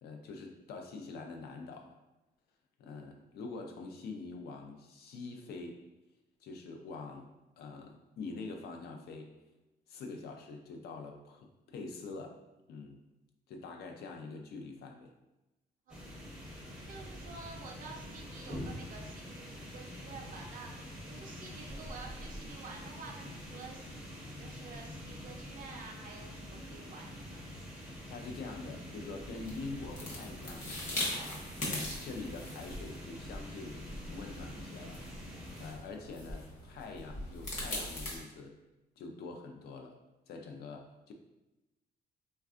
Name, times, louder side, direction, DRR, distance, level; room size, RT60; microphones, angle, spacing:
voice 1, 0.0-2.0 2.8-5.8 6.4-7.3 7.6-9.3 9.9-12.4 12.7-13.0 13.5-15.1 28.1-31.2 31.6-35.0 35.6-38.6 39.0-40.0 40.3-41.1, left 3 dB, 70° left, 3 dB, 0.4 m, -45 dB
sound 1, 15.9-35.7, equal, 5° right, 0.5 m, -46 dB
voice 2, 16.9-19.5 19.7-27.5, right 3 dB, 55° right, 0 dB, 0.5 m, -50 dB
sound 2, 29.2-38.2, left 1 dB, 50° left, 0.8 m, -41 dB
3.4 x 2.2 x 2.4 m, 1.0 s
cardioid pair, 175°, 17 cm